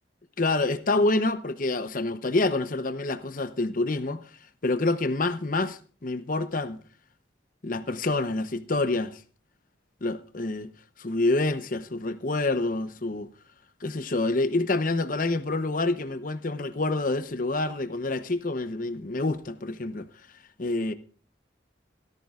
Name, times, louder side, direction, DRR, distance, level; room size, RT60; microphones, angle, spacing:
voice 1, 0.4-4.3 4.6-6.8 7.6-9.2 10.0-10.7 11.0-13.3 13.8-20.1 20.6-20.9, left 2 dB, 45° left, 0.9 m, -27 dB
18.0 x 13.5 x 2.5 m
head